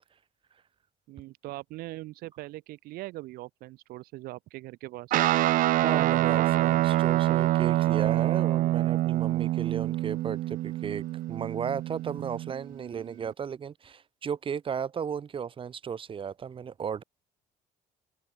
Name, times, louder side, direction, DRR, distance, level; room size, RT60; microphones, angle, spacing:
voice 1, 1.1-5.3, right 18 dB, 85° right, 3.4 m, -41 dB
Guitar, 5.1-12.7, right 15 dB, 65° right, 0.7 m, -26 dB
voice 2, 5.8-17.0, right 7 dB, 35° right, 4.0 m, -35 dB
cardioid pair, 135°, 15 cm